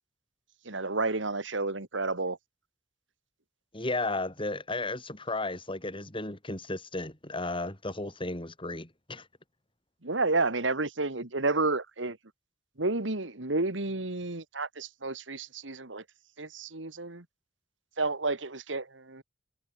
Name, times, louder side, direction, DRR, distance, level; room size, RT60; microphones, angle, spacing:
voice 1, 0.7-2.4 10.0-12.2 12.8-16.0 16.4-17.2 18.0-19.2, right 3 dB, 90° right, 2.3 m, -31 dB
voice 2, 3.7-9.2, left 2 dB, 30° left, 6.6 m, -34 dB
head